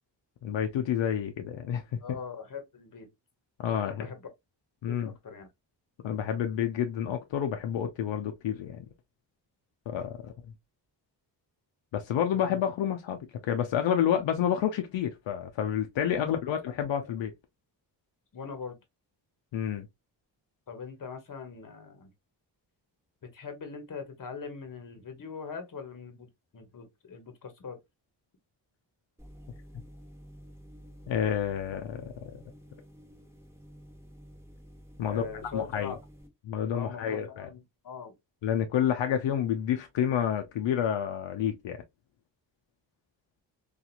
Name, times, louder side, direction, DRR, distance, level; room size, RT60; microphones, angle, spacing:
voice 1, 0.4-2.0 3.6-4.1 4.8-5.1 6.0-8.8 9.9-10.3 11.9-13.2 13.5-17.3 19.5-19.9 31.1-32.1 35.0-35.9 36.5-37.5 38.4-41.8, left 9 dB, 85° left, 0.6 m, -29 dB
voice 2, 2.0-3.1 3.7-4.2 4.9-5.5 12.3-12.4 16.2-16.6 18.3-18.8 20.7-22.1 23.2-26.3 26.5-27.8 35.0-36.0 36.7-38.1, left 5 dB, 45° left, 1.0 m, -41 dB
sound 1, 29.2-36.3, equal, 5° right, 0.9 m, -51 dB
2.8 x 2.4 x 2.3 m
cardioid pair, 70°, 44 cm